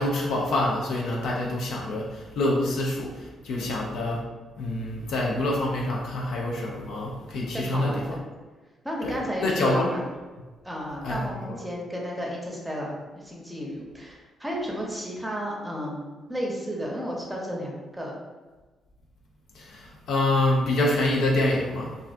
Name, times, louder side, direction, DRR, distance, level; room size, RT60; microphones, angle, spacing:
voice 1, 0.0-4.3 4.6-8.0 9.0-9.9 11.0-11.2 19.5-22.0, left 1 dB, 65° left, -2 dB, 0.4 m, -26 dB
voice 2, 7.5-8.2 8.8-10.0 10.6-18.1, equal, 10° right, -2 dB, 0.7 m, -33 dB
2.4 x 2.1 x 2.5 m, 1.3 s
hypercardioid pair, 45°, 0 cm